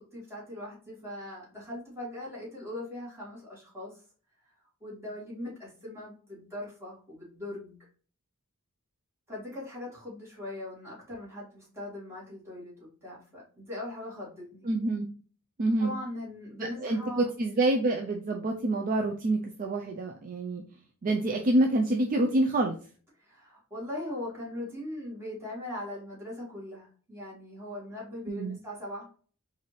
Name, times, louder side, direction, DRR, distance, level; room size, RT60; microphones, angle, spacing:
voice 1, 0.0-3.9 4.8-7.8 9.3-14.7 15.8-17.3 23.2-29.1, left 1 dB, 10° right, -6 dB, 2.0 m, -40 dB
voice 2, 14.6-15.1 15.6-15.9 16.6-20.6 21.0-22.8 28.3-28.6, right 2 dB, 40° right, 2 dB, 0.4 m, -27 dB
4.0 x 2.6 x 3.1 m, 0.41 s
head